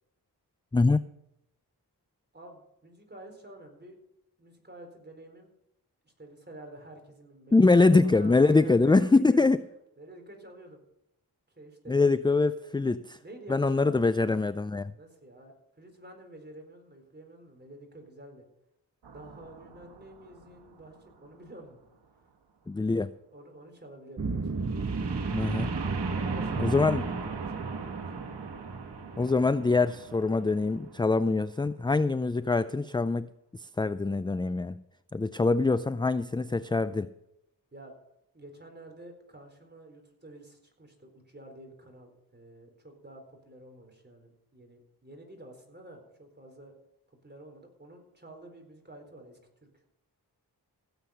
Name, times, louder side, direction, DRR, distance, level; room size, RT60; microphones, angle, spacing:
voice 1, 2.3-4.0 4.4-5.5 6.0-7.6 8.0-9.5 10.0-10.9 11.5-12.1 13.2-13.9 14.9-18.4 19.1-21.8 22.2-22.3 23.3-24.8 26.1-28.3 37.7-37.9 38.3-46.7 47.2-49.4 49.7-49.9, right 1 dB, 25° right, 4 dB, 4.2 m, -49 dB
voice 2, 7.5-9.6 11.9-13.2 13.5-14.9 22.7-23.1 25.3-25.7 26.6-27.0 29.2-34.8 35.1-37.1, left 3 dB, 10° left, 14 dB, 0.4 m, -24 dB
sound 1, 19.0-21.9 24.6-31.5, right 5 dB, 80° right, 1.7 m, -42 dB
sound 2, 24.2-30.4, right 4 dB, 40° right, 1.2 m, -33 dB
16.5 x 8.1 x 5.7 m, 0.83 s
cardioid pair, 60°, 40 cm